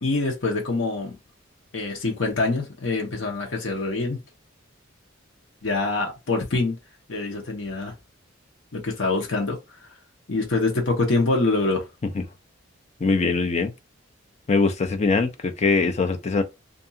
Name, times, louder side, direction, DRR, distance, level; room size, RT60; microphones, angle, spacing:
voice 1, 0.0-1.2 1.7-4.2 5.6-6.8 7.1-7.9 8.7-9.6 10.3-11.9, left 3 dB, 70° left, 0.9 m, -25 dB
voice 2, 13.0-13.7 14.5-16.4, left 4 dB, 35° left, 0.5 m, -22 dB
2.6 x 2.3 x 2.7 m
head